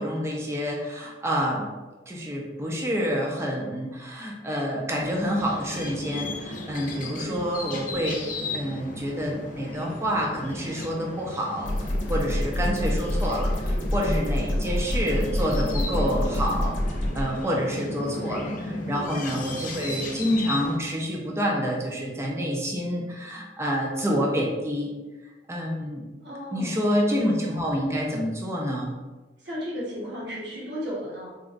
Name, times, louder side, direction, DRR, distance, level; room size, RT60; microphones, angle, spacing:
voice 1, 0.0-1.7 2.1-8.1 8.5-24.9 25.5-26.0 26.5-29.0, equal, 15° right, -1 dB, 0.5 m, -28 dB
sound 1, 5.3-20.8, left 2 dB, 45° left, 0.4 m, -35 dB
sound 2, 11.6-17.2, left 1 dB, 85° left, 0.8 m, -27 dB
voice 2, 18.9-19.2 26.2-26.9 29.4-31.3, equal, 65° right, -5 dB, 1.1 m, -35 dB
3.9 x 2.2 x 2.4 m, 1.2 s
head